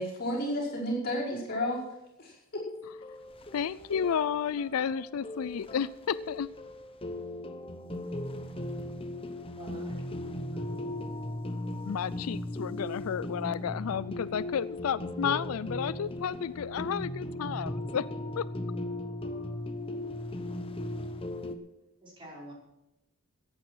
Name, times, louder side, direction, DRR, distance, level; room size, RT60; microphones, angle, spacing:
voice 1, 0.0-1.8 2.2-2.6, equal, 45° left, -4 dB, 5.3 m, -32 dB
sound 1, 2.6-21.6, left 1 dB, 25° left, 0.9 m, -38 dB
voice 2, 3.5-6.5 11.8-18.1 18.4-18.5, left 7 dB, 85° left, 18 dB, 0.4 m, -32 dB
voice 3, 9.6-9.9 22.0-22.5, equal, 25° right, -4 dB, 5.4 m, -47 dB
15.5 x 8.9 x 6.1 m, 0.88 s
head